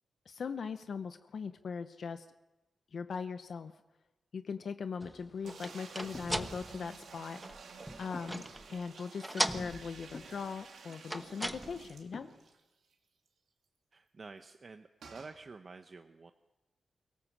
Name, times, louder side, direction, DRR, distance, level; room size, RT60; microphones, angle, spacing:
voice 1, 0.3-2.3 2.9-3.7 4.3-7.4 8.0-8.4 8.7-12.3, left 5 dB, 60° left, 9 dB, 0.8 m, -40 dB
sound 1, 5.0-8.7 9.0-10.2 10.9-12.0, right 1 dB, 5° right, 1.1 m, -38 dB
sound 2, 5.4-12.6 12.9-13.0 13.3-13.4 15.0-15.4, right 5 dB, 80° right, 3.0 m, -52 dB
sound 3, 6.1-6.4 8.1-8.5 10.1-10.4 12.1-12.5, left 3 dB, 40° left, 3.6 m, -47 dB
voice 2, 13.9-16.3, right 4 dB, 40° right, 7 dB, 0.8 m, -50 dB
24.0 x 17.5 x 7.4 m, 1.1 s
wide cardioid pair, 135°, 0 cm